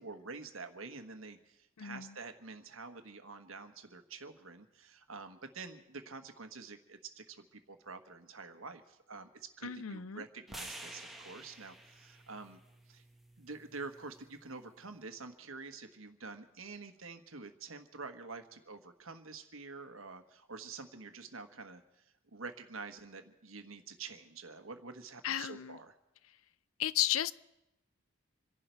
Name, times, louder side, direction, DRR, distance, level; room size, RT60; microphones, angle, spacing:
voice 1, 0.0-12.6 12.9-13.0 13.4-22.0 22.3-26.0, right 4 dB, 85° right, 8 dB, 1.3 m, -47 dB
voice 2, 1.8-2.1 9.6-10.2 25.2-25.8 26.8-27.3, left 11 dB, 90° left, 18 dB, 0.5 m, -34 dB
sound 1, 10.5-14.7, right 1 dB, ahead, 1.3 m, -51 dB
27.0 x 11.0 x 4.6 m, 0.92 s
head